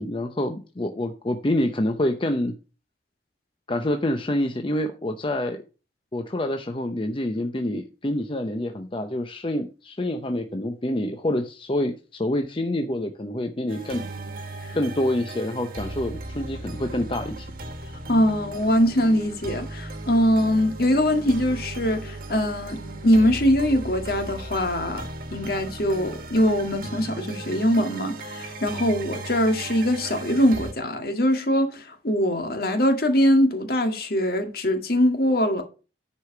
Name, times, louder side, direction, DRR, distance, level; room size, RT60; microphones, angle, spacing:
voice 1, 0.0-2.5 3.7-5.6 6.1-14.1 14.7-17.5, left 1 dB, 30° left, 0.7 m, -27 dB
sound 1, 13.7-30.7, right 2 dB, 55° right, 1.4 m, -37 dB
voice 2, 18.1-25.1 25.3-35.6, equal, 60° left, 1.9 m, -22 dB
9.9 x 5.0 x 5.9 m
head